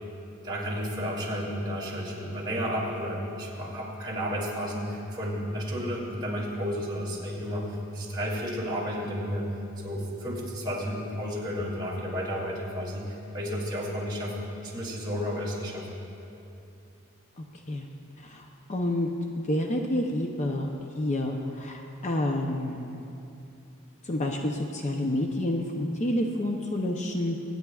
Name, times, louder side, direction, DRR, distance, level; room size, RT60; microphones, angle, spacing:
voice 1, 0.4-9.5 9.8-16.0, equal, 20° right, -6 dB, 2.7 m, -32 dB
voice 2, 17.4-17.9 18.2-20.7 21.0-23.0 24.0-27.4, left 1 dB, 35° left, 2 dB, 0.6 m, -29 dB
25.5 x 9.6 x 2.4 m, 2.8 s
head